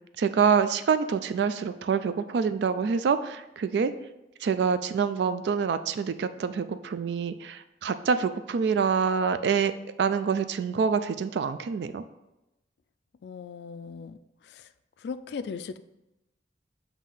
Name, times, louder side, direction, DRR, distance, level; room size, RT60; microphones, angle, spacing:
voice 1, 0.2-3.9 4.4-9.7 10.0-12.0, right 6 dB, 70° right, 11 dB, 0.3 m, -26 dB
voice 2, 13.2-14.2 14.4-14.7 15.0-15.8, left 5 dB, 65° left, 11 dB, 0.3 m, -38 dB
7.0 x 2.8 x 5.6 m, 0.95 s
head